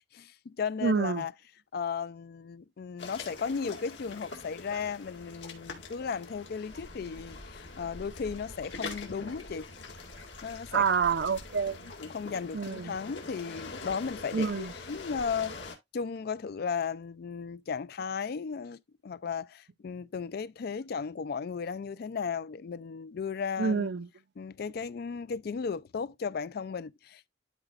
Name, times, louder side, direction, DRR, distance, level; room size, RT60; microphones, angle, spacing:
voice 1, 0.1-1.3 1.7-9.7 10.4-10.9 12.0-23.9 24.4-27.3, left 6 dB, 55° left, 0.4 m, -35 dB
voice 2, 0.8-1.2 10.7-11.9 12.5-12.9 14.3-14.7 23.6-24.1, right 5 dB, 65° right, 0.5 m, -28 dB
sound 1, 3.0-15.8, left 3 dB, 80° left, 2.1 m, -44 dB
12.0 x 4.9 x 2.4 m
head